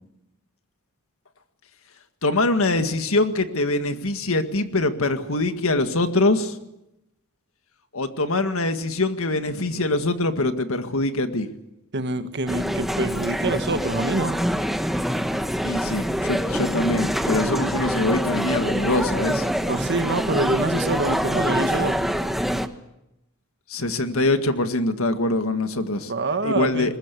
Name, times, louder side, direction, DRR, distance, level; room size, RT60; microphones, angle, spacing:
voice 1, 2.2-6.6 7.9-11.5 15.6-19.5 23.7-26.1 26.4-27.0, left 2 dB, 65° left, 8 dB, 1.9 m, -23 dB
voice 2, 11.9-14.4 19.7-22.0 26.1-26.9, right 2 dB, 55° right, 9 dB, 1.7 m, -26 dB
sound 1, 12.5-22.7, equal, ahead, 1.1 m, -25 dB
22.0 x 20.5 x 8.4 m, 0.88 s
head